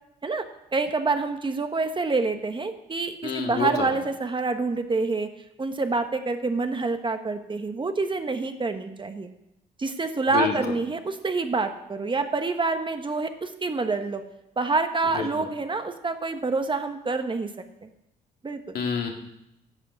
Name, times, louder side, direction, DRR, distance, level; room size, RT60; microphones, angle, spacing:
voice 1, 0.7-5.3 5.6-9.3 9.8-14.2 14.6-17.5 17.8-17.9 18.4-18.8, right 3 dB, 30° right, 7 dB, 1.2 m, -27 dB
voice 2, 3.2-3.9 10.3-10.5 15.1-15.3 18.7-19.1, left 6 dB, 70° left, 2 dB, 2.1 m, -27 dB
10.5 x 7.6 x 6.8 m, 0.86 s
cardioid pair, 75°, 17 cm